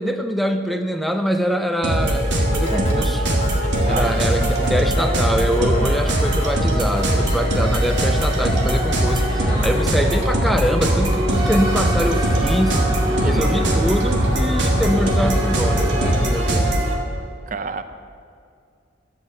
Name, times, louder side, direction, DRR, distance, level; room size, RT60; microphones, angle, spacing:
voice 1, 0.0-3.3 3.8-12.8 13.2-16.8, equal, ahead, 6 dB, 0.6 m, -24 dB
sound 1, 1.8-16.9, right 1 dB, 75° right, 2.0 m, -20 dB
sound 2, 2.6-11.0, left 2 dB, 40° left, 1.9 m, -35 dB
sound 3, 3.5-16.1, equal, 20° right, 2.8 m, -29 dB
voice 2, 3.9-4.2 13.2-13.7 17.5-17.8, right 4 dB, 45° right, 10 dB, 0.5 m, -28 dB
13.0 x 7.9 x 7.6 m, 2.3 s
head